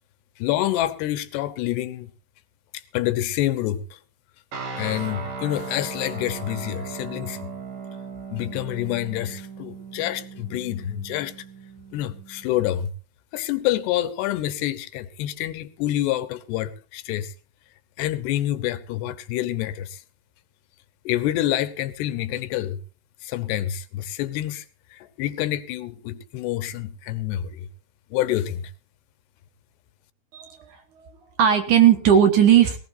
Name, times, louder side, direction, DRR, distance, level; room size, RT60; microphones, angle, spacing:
voice 1, 0.4-2.1 2.9-4.0 4.8-7.4 8.3-11.3 11.9-12.9 13.3-17.3 18.0-20.0 21.1-22.8 23.2-24.6 24.9-27.7 28.1-28.7, left 13 dB, 85° left, 3.1 m, -27 dB
sound 1, 4.5-12.8, right 4 dB, 80° right, 5.8 m, -37 dB
voice 2, 30.3-30.8 31.4-32.8, right 9 dB, 60° right, 2.5 m, -17 dB
18.5 x 18.5 x 2.6 m
omnidirectional pair, 4.7 m